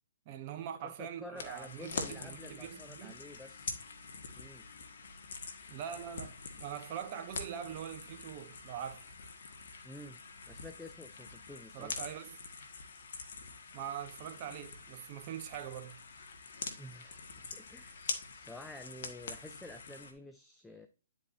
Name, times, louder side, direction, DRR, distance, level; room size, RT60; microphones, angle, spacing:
voice 1, 0.3-3.2 5.7-9.1 11.7-12.4 13.7-16.0, right 9 dB, 35° right, 1.0 m, -43 dB
voice 2, 0.8-3.8 4.4-4.6 9.8-10.2 10.5-11.9 16.8-17.2 17.5-20.9, left 1 dB, 5° left, 0.5 m, -50 dB
sound 1, 1.4-20.1, left 4 dB, 65° left, 1.5 m, -45 dB
10.0 x 4.7 x 2.7 m
hypercardioid pair, 140°, 0 cm